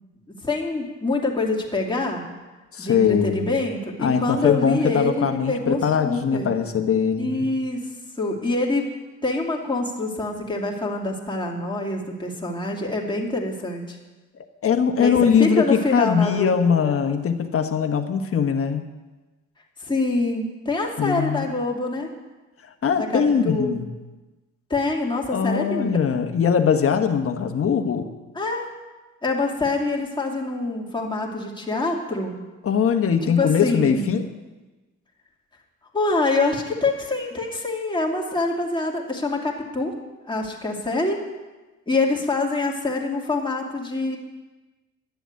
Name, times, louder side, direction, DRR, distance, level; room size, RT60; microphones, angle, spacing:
voice 1, 0.3-2.2 2.8-6.5 7.2-7.9 8.2-8.9 9.2-14.0 15.0-17.0 19.8-22.1 22.9-23.7 24.7-26.0 28.3-28.7 29.2-32.4 33.2-34.1 35.9-39.9 40.3-41.2 41.9-44.2, left 2 dB, 15° left, -2 dB, 2.6 m, -25 dB
voice 2, 2.7-3.6 4.0-7.5 14.6-18.8 21.0-21.5 22.8-23.8 25.3-28.1 32.6-34.3, left 7 dB, 50° left, 6 dB, 1.2 m, -21 dB
11.5 x 7.0 x 9.5 m, 1.2 s
cardioid pair, 90°, 30 cm